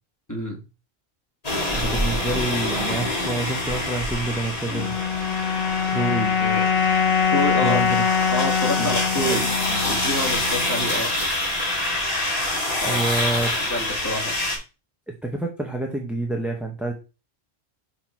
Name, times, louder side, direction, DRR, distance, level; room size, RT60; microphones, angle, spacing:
voice 1, 0.3-0.6 6.4-6.6 7.2-7.8 8.3-9.4 9.8-11.1 12.8-13.0 13.7-14.3, equal, 15° left, 0 dB, 1.9 m, -28 dB
sound 1, 1.4-14.6, left 1 dB, 35° left, 2.0 m, -26 dB
voice 2, 1.7-5.0 5.9-6.4 7.6-8.0 8.8-9.0 9.3-9.8 12.9-13.5 15.2-16.9, right 2 dB, ahead, 1 dB, 0.8 m, -28 dB
sound 2, 4.7-11.1, left 6 dB, 70° left, 0.9 m, -23 dB
5.9 x 4.4 x 4.5 m, 0.30 s
omnidirectional pair, 1.1 m